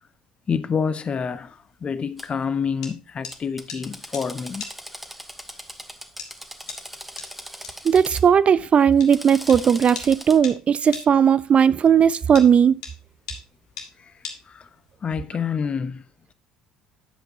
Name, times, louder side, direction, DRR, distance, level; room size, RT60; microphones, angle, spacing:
voice 1, 0.5-4.6 14.5-14.7 15.0-16.0, left 6 dB, 30° left, 0.8 m, -27 dB
sound 1, 1.1-15.0, left 6 dB, 70° left, 2.1 m, -41 dB
Drill, 2.2-2.3 3.3-8.2 8.9-10.4, equal, 5° right, 1.2 m, -40 dB
voice 2, 7.8-12.8, right 7 dB, 35° right, 0.4 m, -17 dB
10.5 x 7.8 x 2.9 m
figure-of-eight pair, 60°, 4 cm